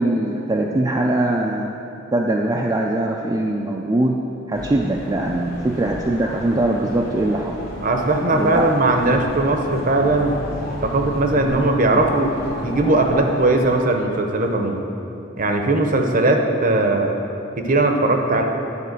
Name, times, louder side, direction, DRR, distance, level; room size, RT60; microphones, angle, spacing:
voice 1, 0.0-1.7 2.1-4.2 4.5-7.5 8.3-8.7, right 1 dB, 20° right, -1 dB, 0.3 m, -21 dB
sound 1, 4.5-13.8, left 1 dB, 50° left, 1.4 m, -33 dB
voice 2, 7.8-10.4 10.8-12.3 12.6-14.8 15.4-17.1 17.6-18.4, right 2 dB, 40° right, 4 dB, 0.7 m, -19 dB
9.8 x 4.1 x 6.6 m, 2.8 s
head